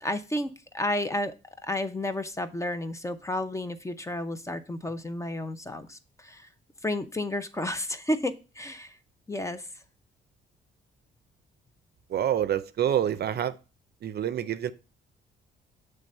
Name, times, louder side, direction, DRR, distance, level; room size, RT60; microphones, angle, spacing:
voice 1, 0.0-1.3 1.6-6.5 6.8-9.0 9.3-9.7, left 1 dB, 15° left, 10 dB, 0.6 m, -32 dB
voice 2, 12.1-13.6 14.0-14.7, right 10 dB, 55° right, 13 dB, 0.5 m, -27 dB
7.0 x 3.4 x 5.2 m, 0.32 s
cardioid pair, 90°, 20 cm